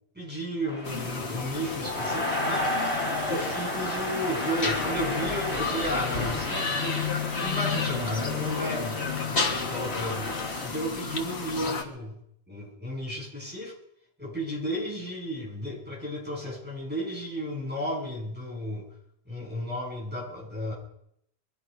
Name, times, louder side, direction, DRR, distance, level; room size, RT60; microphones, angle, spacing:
voice 1, 0.2-2.7 3.3-6.8 7.4-12.2 12.5-13.7 14.2-18.9 19.3-20.7, equal, 10° right, -5 dB, 7.4 m, -33 dB
sound 1, 0.7-10.7, left 1 dB, 30° left, 4.7 m, -33 dB
sound 2, 0.8-11.8, left 5 dB, 75° left, 1.9 m, -32 dB
23.0 x 11.5 x 5.3 m, 0.73 s
omnidirectional pair, 1.1 m